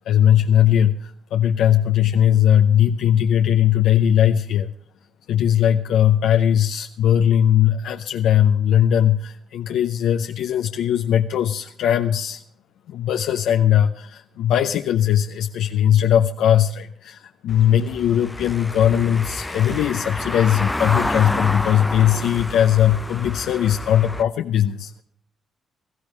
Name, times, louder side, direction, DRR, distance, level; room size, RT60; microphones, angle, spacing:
voice 1, 0.1-4.7 5.3-12.4 12.9-25.0, left 10 dB, 85° left, 6 dB, 0.6 m, -19 dB
Car passing by / Engine, 17.5-24.2, left 2 dB, 10° left, 0.5 m, -29 dB
18.5 x 14.5 x 3.3 m, 0.67 s
cardioid pair, 90°, 0 cm